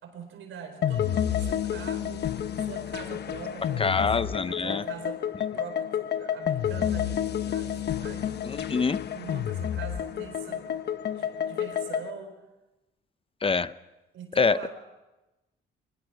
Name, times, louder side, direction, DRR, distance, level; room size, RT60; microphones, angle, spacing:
voice 1, 0.0-2.3 2.6-5.2 5.5-8.3 9.1-12.3 14.1-14.7, right 7 dB, 80° right, 6 dB, 4.6 m, -43 dB
sound 1, 0.8-12.1, left 9 dB, 60° left, 1.1 m, -30 dB
voice 2, 3.8-4.8 8.4-9.0 13.4-13.7 14.4-14.7, left 4 dB, 30° left, 15 dB, 0.6 m, -25 dB
23.5 x 20.5 x 6.1 m, 1.0 s
cardioid pair, 90°, 20 cm